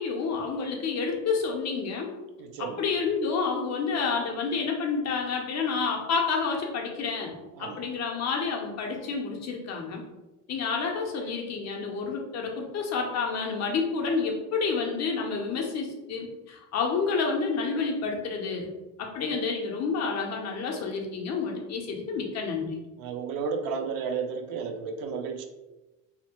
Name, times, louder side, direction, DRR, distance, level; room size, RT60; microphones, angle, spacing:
voice 1, 0.0-2.1 2.6-10.0 10.5-18.7 19.0-22.8, left 5 dB, 50° left, 1 dB, 0.6 m, -29 dB
voice 2, 2.4-2.8 7.6-7.8 23.0-25.5, right 5 dB, 80° right, 6 dB, 0.5 m, -32 dB
2.8 x 2.0 x 2.8 m, 1.1 s
cardioid pair, 110°, 34 cm